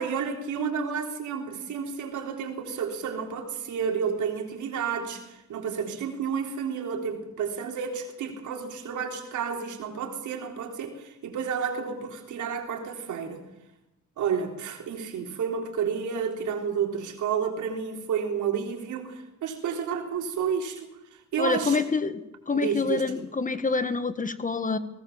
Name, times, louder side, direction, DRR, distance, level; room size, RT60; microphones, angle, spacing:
voice 1, 0.0-13.4 14.2-20.9 21.3-21.8 22.5-23.1, right 7 dB, 75° right, 3 dB, 3.7 m, -31 dB
voice 2, 21.4-22.2 22.5-24.8, left 4 dB, 25° left, 12 dB, 1.5 m, -26 dB
19.5 x 19.0 x 7.2 m, 0.96 s
cardioid pair, 90°, 30 cm